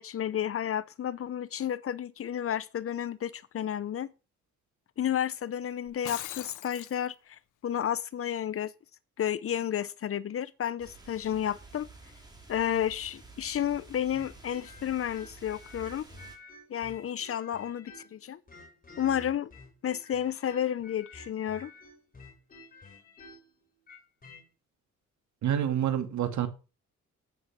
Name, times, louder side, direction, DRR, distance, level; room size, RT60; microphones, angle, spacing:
voice 1, 0.0-4.1 5.0-8.7 9.2-11.9 12.5-16.1 16.7-18.4 19.0-19.5 19.8-21.7, left 10 dB, 50° left, 0.7 m, -31 dB
Shatter, 5.9-7.0, left 14 dB, 85° left, 1.0 m, -40 dB
sound 1, 10.8-16.4, right 3 dB, 15° right, 4.3 m, -52 dB
sound 2, 14.1-18.2 18.5-24.4, left 3 dB, 30° left, 4.2 m, -51 dB
voice 2, 25.4-26.5, right 10 dB, 70° right, 2.3 m, -27 dB
9.7 x 8.4 x 5.6 m
cardioid pair, 90°, 30 cm